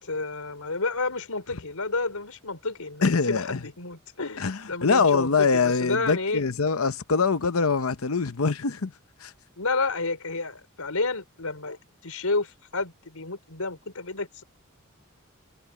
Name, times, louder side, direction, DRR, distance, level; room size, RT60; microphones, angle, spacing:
voice 1, 0.0-6.4 9.6-11.8 12.0-14.4, left 3 dB, 85° left, 4.6 m, -30 dB
voice 2, 3.0-3.6 4.4-8.9 9.2-9.3, left 4 dB, 70° left, 0.8 m, -24 dB
head